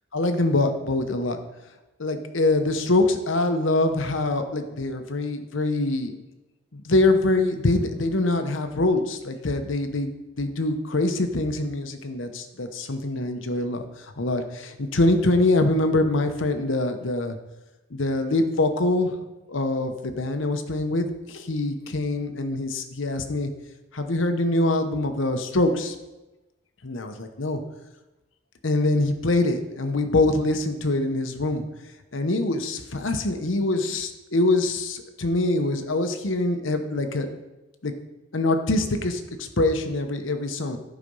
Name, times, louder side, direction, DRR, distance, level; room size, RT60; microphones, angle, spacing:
voice 1, 0.1-1.4 2.0-6.2 6.7-10.1 10.4-13.8 14.2-17.4 17.9-19.1 19.5-23.5 23.9-25.9 26.8-27.6 28.6-31.6 32.1-37.3 37.8-37.9 38.3-40.8, left 2 dB, 90° left, 7 dB, 1.0 m, -24 dB
11.5 x 5.0 x 5.5 m, 1.0 s
head